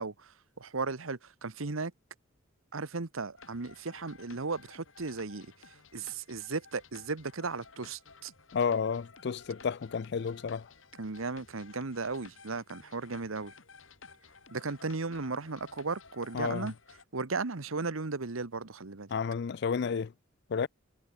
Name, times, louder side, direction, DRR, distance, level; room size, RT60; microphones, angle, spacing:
voice 1, 0.0-1.9 2.7-5.5 5.9-8.3 11.0-13.5 14.5-16.7 17.1-19.1, right 4 dB, 90° right, 1.2 m, -36 dB
sound 1, 3.4-17.0, left 4 dB, 75° left, 4.4 m, -55 dB
voice 2, 8.5-10.7 16.3-16.7 19.1-20.1 20.5-20.7, left 6 dB, 55° left, 0.4 m, -31 dB
head